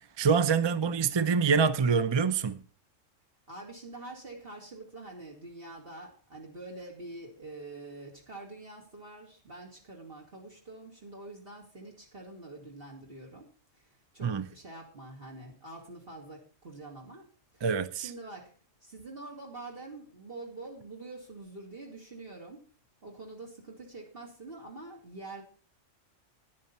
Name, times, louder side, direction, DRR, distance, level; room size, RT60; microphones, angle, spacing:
voice 1, 0.2-2.6 14.2-14.5 17.6-18.1, right 6 dB, 30° right, 0.5 m, -25 dB
voice 2, 3.5-17.3 17.5-17.6 17.9-18.5 18.8-22.6 23.0-25.4, right 2 dB, 45° right, 2.6 m, -46 dB
12.5 x 10.5 x 4.3 m
omnidirectional pair, 1.3 m